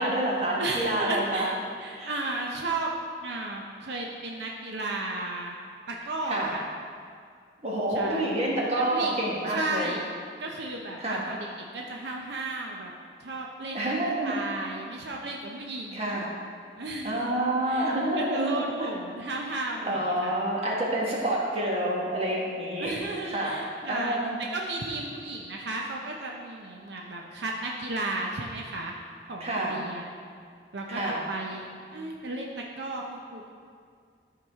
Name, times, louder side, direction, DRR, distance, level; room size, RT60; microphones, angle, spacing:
voice 1, 0.0-1.5 1.9-2.1 6.3-6.5 7.6-9.9 11.0-11.2 13.7-14.4 15.9-16.3 17.0-18.9 19.8-22.9 23.2-23.6 23.8-24.4 29.4-29.8 30.9-31.2, right 1 dB, 35° right, -4 dB, 1.4 m, -28 dB
voice 2, 0.6-1.5 1.8-2.9 3.2-5.5 5.9-6.6 7.9-8.3 8.8-9.1 9.5-10.1 10.4-12.9 13.2-16.2 16.8-17.3 17.7-20.4 22.8-24.2 24.5-28.9 29.3-30.1 30.7-31.0 31.3-32.5 32.8-33.5, right 2 dB, 75° right, 0 dB, 0.7 m, -34 dB
13.0 x 4.8 x 3.6 m, 2.1 s
head